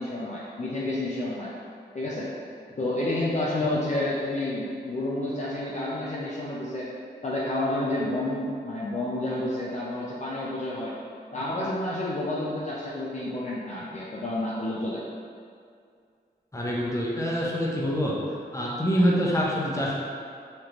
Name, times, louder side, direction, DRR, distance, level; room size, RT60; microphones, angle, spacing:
voice 1, 0.0-1.5 1.9-2.3 2.8-6.9 7.2-10.9 11.3-15.0, left 1 dB, 40° left, -6 dB, 0.5 m, -30 dB
voice 2, 16.5-18.1 18.5-20.0, equal, 15° left, -5 dB, 0.8 m, -25 dB
3.2 x 2.4 x 3.0 m, 2.3 s
cardioid pair, 45°, 18 cm